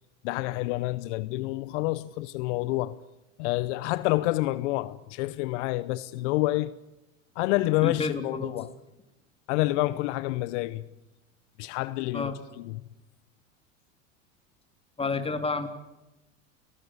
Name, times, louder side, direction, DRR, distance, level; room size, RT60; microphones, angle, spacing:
voice 1, 0.2-3.0 3.4-6.7 7.4-8.7 9.5-10.8 11.6-12.8, left 18 dB, 65° left, 1.0 m, -28 dB
voice 2, 7.8-8.6 12.1-12.4 15.0-15.7, left 4 dB, 15° left, 3.2 m, -30 dB
30.0 x 18.5 x 8.1 m
hypercardioid pair, 105°, 39 cm